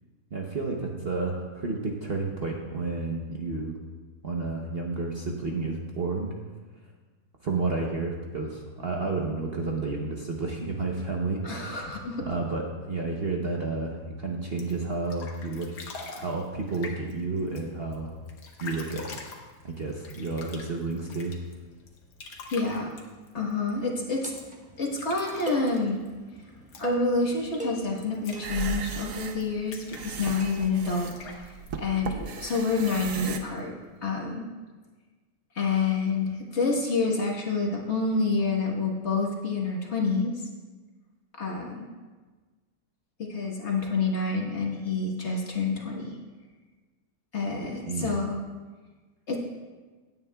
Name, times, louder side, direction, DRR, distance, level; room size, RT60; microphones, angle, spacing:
voice 1, 0.3-3.7 4.2-6.3 7.4-11.9 12.2-15.7 16.1-18.1 18.6-19.1 19.6-21.3 47.9-48.1, right 3 dB, 45° right, -1 dB, 0.9 m, -31 dB
voice 2, 11.4-12.3 22.5-22.9 23.3-24.3 24.8-26.0 26.8-31.5 31.8-33.7 34.0-34.5 35.5-40.4 41.4-41.9 43.3-46.2 47.3-48.4 49.3-49.4, left 4 dB, 45° left, -1 dB, 1.6 m, -28 dB
sound 1, 14.4-34.0, left 4 dB, 80° left, 1.7 m, -47 dB
sound 2, 23.7-30.8, right 2 dB, 5° right, 0.9 m, -40 dB
sound 3, 28.3-33.4, right 7 dB, 60° right, 1.1 m, -36 dB
16.5 x 9.4 x 2.3 m, 1.3 s
omnidirectional pair, 1.7 m